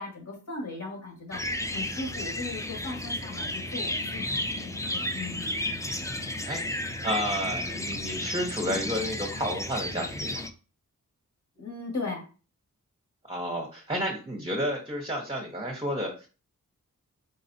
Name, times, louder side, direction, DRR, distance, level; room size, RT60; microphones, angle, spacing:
voice 1, 0.0-1.4 1.7-5.5 11.6-12.2, left 3 dB, 60° left, -3 dB, 1.8 m, -37 dB
sound 1, 1.3-10.5, left 1 dB, 10° left, 0.4 m, -33 dB
voice 2, 6.5-10.5 13.3-16.3, equal, 15° right, 0 dB, 0.9 m, -31 dB
4.0 x 4.0 x 2.7 m, 0.34 s
wide cardioid pair, 105°, 32 cm